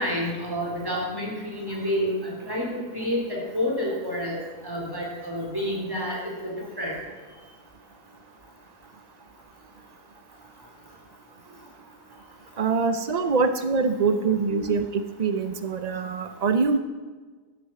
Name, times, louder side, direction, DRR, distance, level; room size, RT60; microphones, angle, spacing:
voice 1, 0.0-6.9 14.1-14.2 14.5-14.6, equal, 15° right, -2 dB, 3.7 m, -29 dB
voice 2, 12.6-16.8, right 4 dB, 75° right, 9 dB, 0.3 m, -24 dB
11.5 x 10.5 x 7.6 m, 1.4 s
omnidirectional pair, 1.7 m